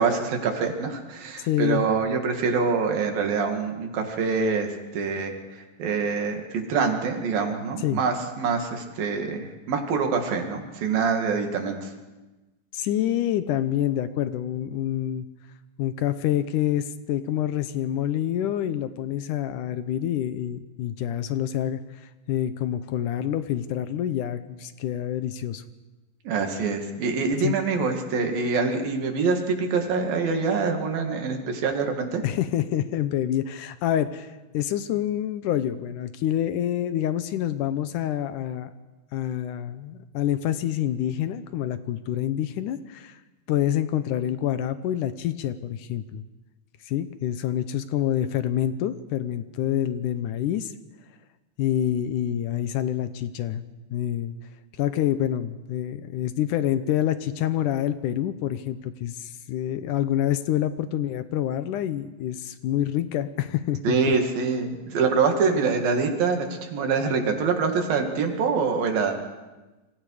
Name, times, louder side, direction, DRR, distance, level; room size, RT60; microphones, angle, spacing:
voice 1, 0.0-5.3 5.8-11.9 26.3-32.2 63.8-69.2, right 5 dB, 85° right, 3 dB, 4.2 m, -25 dB
voice 2, 1.4-1.9 7.8-8.0 12.7-15.2 15.8-25.6 27.4-27.6 32.2-38.7 39.1-43.2 43.5-46.2 46.9-50.7 51.6-53.6 53.9-54.3 54.8-64.0, left 11 dB, 75° left, 12 dB, 2.2 m, -27 dB
27.0 x 24.5 x 5.0 m, 1.1 s
omnidirectional pair, 4.0 m